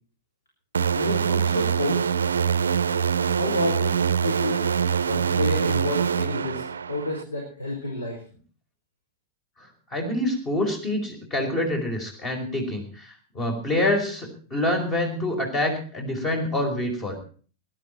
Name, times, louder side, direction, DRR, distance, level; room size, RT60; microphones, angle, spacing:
sound 1, 0.7-7.2, right 7 dB, 70° right, 0.6 m, -24 dB
voice 1, 0.9-2.1 3.3-4.6 5.1-8.2, left 2 dB, 75° left, 0 dB, 4.6 m, -30 dB
voice 2, 9.6-17.2, left 1 dB, 25° left, 4 dB, 4.9 m, -26 dB
21.0 x 11.5 x 4.5 m, 0.41 s
figure-of-eight pair, 90°, 0 cm